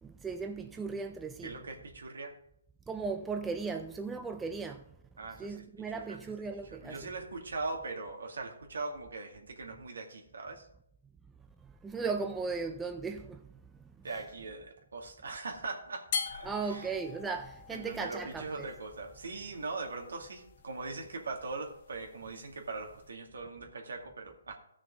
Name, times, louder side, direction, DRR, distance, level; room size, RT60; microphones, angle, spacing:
voice 1, 0.0-1.5 2.9-4.8 5.4-7.0 11.8-13.4 16.4-18.7, right 4 dB, 5° right, 0.3 m, -36 dB
voice 2, 1.4-2.3 5.2-10.7 14.0-17.0 17.7-24.6, right 3 dB, 85° right, 2.3 m, -41 dB
sound 1, 16.1-23.1, left 6 dB, 40° left, 1.1 m, -44 dB
15.0 x 6.3 x 3.8 m
hypercardioid pair, 165°, 0 cm